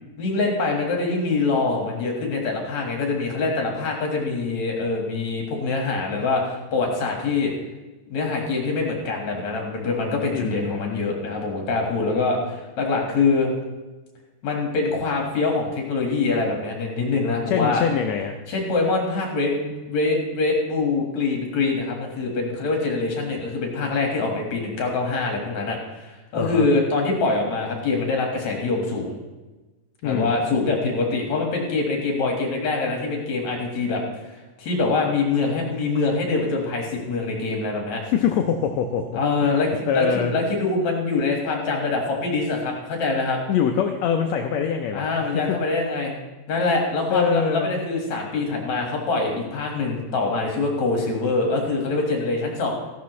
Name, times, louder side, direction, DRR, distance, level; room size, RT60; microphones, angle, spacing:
voice 1, 0.2-7.5 8.1-13.5 14.4-17.8 18.5-29.2 30.0-34.3 34.6-38.0 39.1-39.7 39.9-43.4 44.9-46.2 46.5-52.7, left 3 dB, 60° left, 0 dB, 2.9 m, -24 dB
voice 2, 10.3-11.0 17.5-18.4 26.4-26.7 30.0-30.3 38.0-39.6 39.9-40.3 43.5-45.6 47.1-47.7, left 7 dB, 75° left, 4 dB, 1.6 m, -24 dB
15.5 x 12.0 x 3.2 m, 1.1 s
omnidirectional pair, 3.8 m